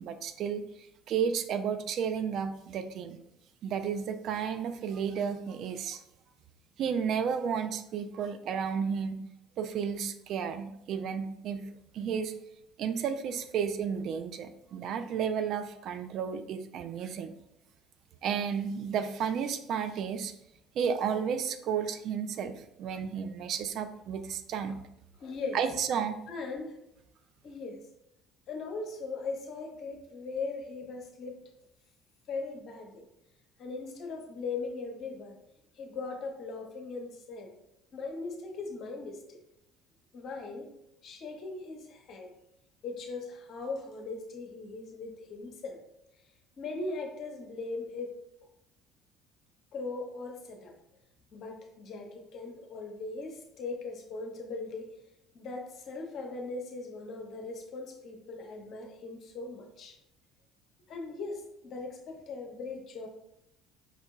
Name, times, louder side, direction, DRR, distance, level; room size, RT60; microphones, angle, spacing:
voice 1, 0.0-3.2 3.6-6.0 6.8-9.2 9.6-12.3 12.8-17.3 18.2-20.3 20.8-24.8 25.5-26.2, right 7 dB, 50° right, 9 dB, 0.3 m, -32 dB
voice 2, 25.2-25.6 26.3-26.8 27.4-27.8 28.5-31.4 32.3-33.0 33.6-35.4 35.7-37.5 37.9-39.4 40.1-40.7 41.0-42.3 42.8-45.8 46.6-48.2 49.7-50.7 51.3-55.0 55.3-60.0 60.9-63.1, left 3 dB, 50° left, 2 dB, 0.7 m, -39 dB
5.1 x 2.6 x 2.4 m, 0.80 s
figure-of-eight pair, 55°, 0 cm